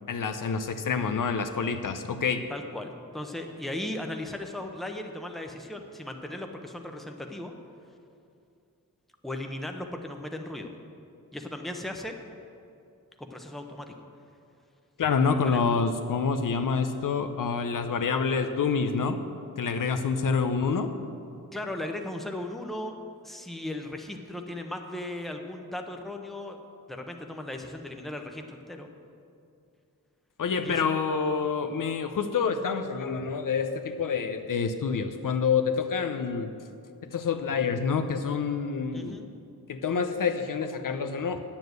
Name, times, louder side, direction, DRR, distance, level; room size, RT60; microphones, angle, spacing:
voice 1, 0.1-2.4 15.0-19.2 19.6-20.9 30.4-36.5 37.1-39.3 39.7-41.4, left 5 dB, 65° left, 7 dB, 0.7 m, -27 dB
voice 2, 2.5-7.5 9.2-10.7 11.3-12.1 13.2-14.0 15.4-15.7 21.5-22.9 23.2-26.6 26.9-28.9 30.6-30.9 38.9-39.2, left 1 dB, ahead, 3 dB, 0.8 m, -37 dB
9.6 x 7.2 x 7.9 m, 2.5 s
wide cardioid pair, 110°, 35 cm